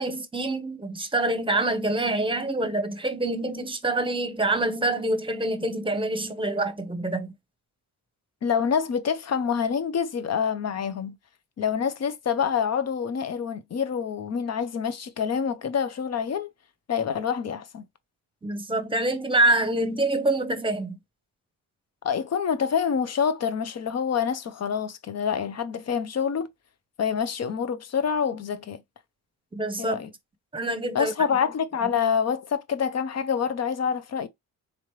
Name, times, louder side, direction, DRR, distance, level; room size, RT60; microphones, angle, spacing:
voice 1, 0.0-7.3 18.4-21.0 29.5-30.1 30.5-31.1, right 2 dB, 15° right, 0.9 m, -26 dB
voice 2, 8.4-11.2 11.6-16.5 16.9-17.9 22.0-26.5 27.0-28.8 29.8-30.1 30.9-34.3, left 7 dB, 50° left, 0.7 m, -26 dB
3.9 x 3.1 x 3.1 m
cardioid pair, 85°, 34 cm